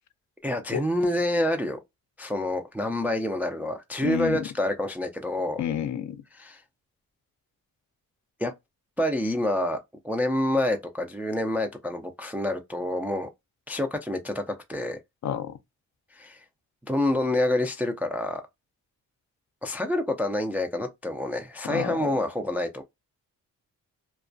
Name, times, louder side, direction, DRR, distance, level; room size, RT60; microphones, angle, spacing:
voice 1, 0.4-1.8 2.2-5.6 6.4-6.6 8.4-8.5 9.0-9.8 10.0-13.3 13.7-14.4 14.7-15.0 16.1-16.4 16.9-18.4 19.6-22.8, left 1 dB, 5° right, 0.4 m, -27 dB
voice 2, 4.0-4.5 5.6-6.2 15.2-15.6 21.6-22.1, left 9 dB, 55° left, 0.5 m, -29 dB
2.2 x 2.2 x 2.5 m
cardioid pair, 70°, 34 cm